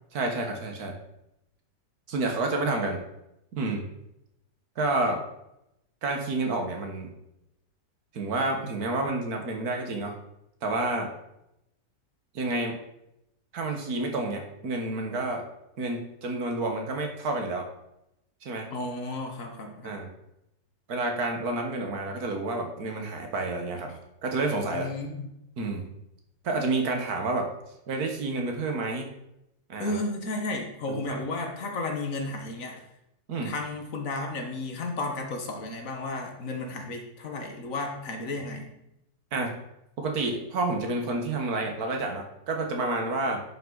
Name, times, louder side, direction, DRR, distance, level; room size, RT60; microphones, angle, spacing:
voice 1, 0.1-0.9 2.1-3.0 3.5-3.9 4.8-5.2 6.0-7.1 8.1-10.1 10.6-11.1 12.4-12.8 13.5-15.4 15.8-17.7 18.4-18.7 19.8-20.1 20.9-23.9 24.2-24.9 25.6-25.8 26.4-27.5 27.9-29.1 29.7-30.0 30.9-31.2 33.3-33.5 39.3-39.5 40.0-43.4, right 2 dB, 70° right, 3 dB, 1.7 m, -29 dB
voice 2, 18.7-20.0 24.7-25.3 29.8-32.8 33.4-38.7, left 2 dB, 60° left, 3 dB, 1.5 m, -33 dB
10.5 x 5.5 x 3.9 m, 0.84 s
omnidirectional pair, 1.7 m